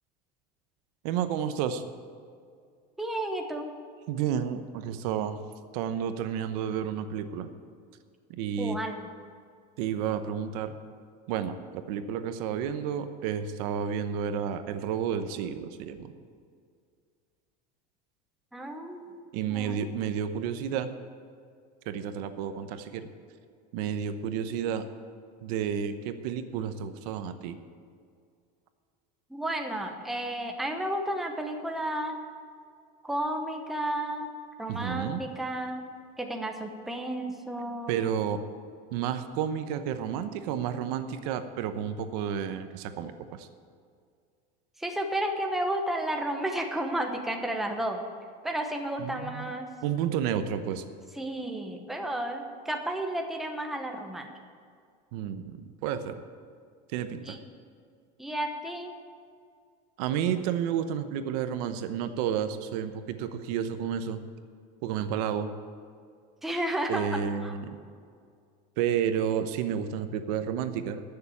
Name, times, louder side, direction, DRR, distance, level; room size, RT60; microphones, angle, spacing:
voice 1, 1.0-1.8 4.1-5.4 5.7-7.5 8.3-8.8 9.8-10.7 11.3-16.2 19.3-20.9 21.9-23.1 23.7-24.9 25.4-27.6 34.7-35.2 37.9-38.4 38.9-43.5 49.0-49.5 49.8-50.8 55.1-56.2 56.9-57.4 60.0-64.2 64.8-65.5 66.9-67.8 68.8-71.0, right 8 dB, 65° right, 9 dB, 0.9 m, -31 dB
voice 2, 3.0-3.7 8.6-9.1 18.5-19.8 29.3-32.2 33.0-34.3 34.6-35.8 36.2-38.0 44.8-48.0 48.4-49.7 51.2-54.3 57.2-57.4 58.2-58.9 66.4-67.1 67.4-67.5, right 1 dB, ahead, 3 dB, 0.8 m, -32 dB
14.5 x 6.9 x 8.4 m, 2.2 s
cardioid pair, 165°, 21 cm